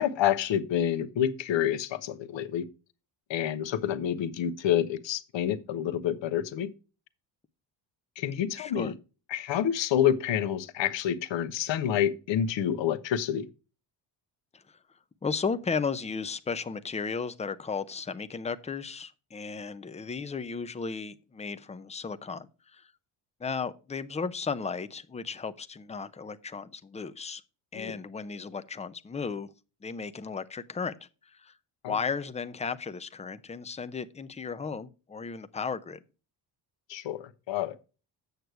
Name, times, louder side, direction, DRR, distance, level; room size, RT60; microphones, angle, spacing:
voice 1, 0.0-2.7 3.3-6.7 8.2-8.9 9.3-13.5 27.7-27.9 31.8-31.9 36.9-37.8, left 10 dB, 65° left, 1.0 m, -28 dB
voice 2, 8.6-9.0 14.5-14.8 15.2-22.9 23.4-27.4 27.7-29.5 29.8-31.5 31.9-36.0, left 5 dB, 15° left, 0.6 m, -35 dB
8.1 x 6.6 x 4.6 m
supercardioid pair, 75°, 49 cm